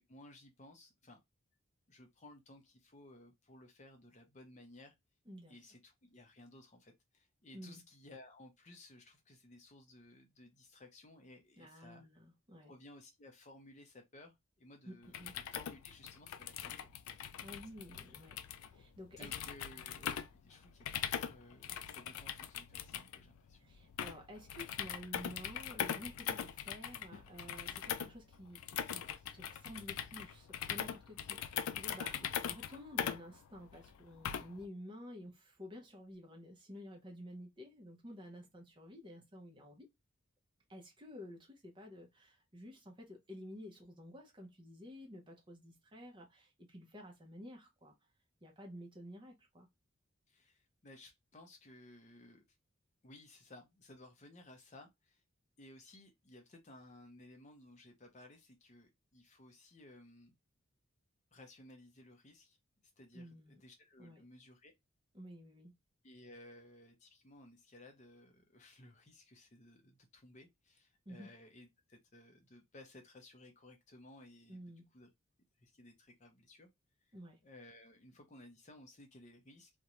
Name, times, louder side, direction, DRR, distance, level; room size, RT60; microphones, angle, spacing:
voice 1, 0.1-1.2 1.9-4.9 5.5-12.0 12.6-17.3 19.2-23.7 32.1-32.4 50.3-52.4 53.0-55.2 55.6-60.4 61.3-62.6 63.0-64.7 66.0-74.6 74.9-75.1 75.6-76.7 77.0-77.2 77.4-79.7, left 1 dB, 35° left, 0.5 m, -58 dB
voice 2, 5.3-5.6 7.5-7.8 11.6-12.7 14.8-15.3 17.2-18.4 18.7-19.3 23.6-32.2 32.4-39.9 40.7-47.9 48.4-49.7 63.1-63.6 64.0-64.2 65.1-65.7 71.1-71.3 74.5-74.8 77.1-77.4, equal, 25° right, 0.6 m, -51 dB
sound 1, 15.0-34.7, left 9 dB, 85° left, 0.3 m, -42 dB
2.5 x 2.1 x 2.9 m
head